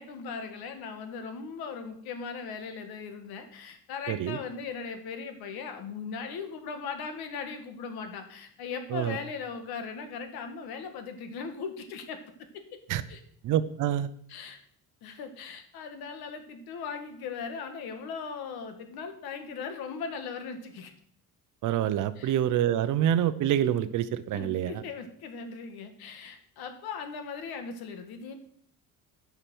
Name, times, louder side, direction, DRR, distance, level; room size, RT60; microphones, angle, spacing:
voice 1, 0.0-12.2 12.5-12.6 13.1-13.2 14.3-14.6 15.0-20.9 22.2-22.4 24.3-28.4, left 5 dB, 80° left, 7 dB, 1.6 m, -38 dB
voice 2, 4.1-4.4 8.9-9.2 12.9-13.0 13.4-14.1 21.6-24.7, right 11 dB, 55° right, 14 dB, 0.7 m, -26 dB
10.0 x 5.9 x 6.1 m, 0.63 s
cardioid pair, 170°, 37 cm